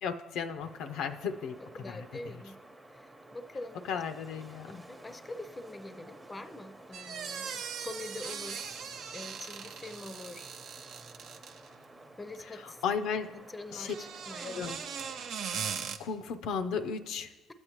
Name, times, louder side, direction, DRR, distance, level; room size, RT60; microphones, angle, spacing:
voice 1, 0.0-1.6 1.9-2.0 3.9-4.8 12.8-13.3 13.7-13.9 14.4-14.8 15.7-17.3, left 6 dB, 75° left, 8 dB, 0.4 m, -35 dB
Wind, 0.6-15.5, right 1 dB, 15° right, 0.8 m, -53 dB
voice 2, 1.7-2.6 2.9-4.0 4.7-8.8 9.1-10.5 12.2-12.8 13.3-14.6, left 2 dB, 20° left, 10 dB, 0.5 m, -44 dB
sound 1, 6.9-11.8 13.7-16.0, right 7 dB, 65° right, 0.5 m, -40 dB
13.0 x 7.9 x 3.0 m, 1.1 s
supercardioid pair, 80°, 0 cm